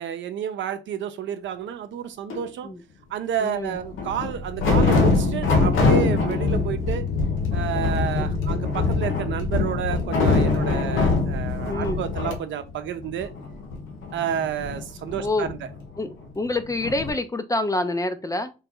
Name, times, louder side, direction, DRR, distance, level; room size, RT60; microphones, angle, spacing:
voice 1, 0.0-2.7 3.1-7.1 7.5-13.3 14.1-15.6, right 9 dB, 70° right, 0.7 m, -30 dB
sound 1, 2.3-2.5 3.8-12.4 12.7-12.8 13.0-16.3 16.8-17.1, left 4 dB, 85° left, 1.0 m, -23 dB
voice 2, 3.4-3.8 8.2-8.5 11.7-12.0 15.2-15.5 16.0-18.5, left 2 dB, 15° left, 0.5 m, -27 dB
3.2 x 2.9 x 3.7 m
cardioid pair, 90°, 20 cm